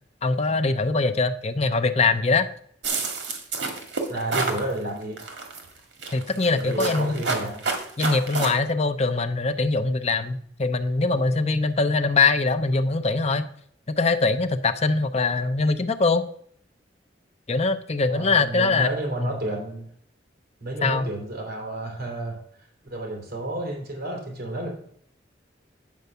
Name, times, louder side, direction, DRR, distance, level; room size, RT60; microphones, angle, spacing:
voice 1, 0.2-2.5 6.1-7.2 8.0-13.5 13.9-16.2 17.5-18.9 19.2-19.4 20.8-21.1, left 3 dB, 35° left, 9 dB, 0.6 m, -22 dB
sound 1, 2.8-4.6 5.2-5.6 6.0-8.5, right 4 dB, 80° right, 1.8 m, -28 dB
voice 2, 4.1-5.2 6.5-7.6 18.1-19.8 20.6-22.4 22.9-24.7, right 1 dB, 60° right, -1 dB, 3.2 m, -31 dB
9.4 x 4.7 x 6.8 m, 0.63 s
head